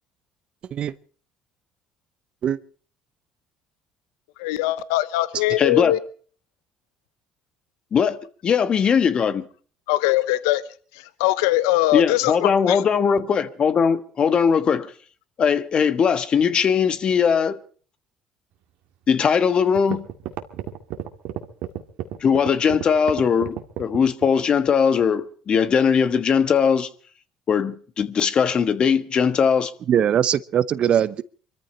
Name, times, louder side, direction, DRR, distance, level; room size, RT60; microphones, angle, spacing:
voice 1, 4.4-6.0 9.9-10.6 11.2-12.8, left 16 dB, 85° left, 0.8 m, -21 dB
voice 2, 5.6-6.0 7.9-8.2 8.4-9.4 11.9-14.9 15.4-17.6 19.1-20.1 22.2-26.9 27.5-29.7, left 6 dB, 45° left, 1.4 m, -20 dB
sound 1, 19.3-19.4 19.8-24.4, right 13 dB, 70° right, 1.9 m, -31 dB
voice 3, 29.9-31.2, right 9 dB, 55° right, 0.8 m, -21 dB
24.0 x 14.0 x 4.3 m
hypercardioid pair, 70°, 2 cm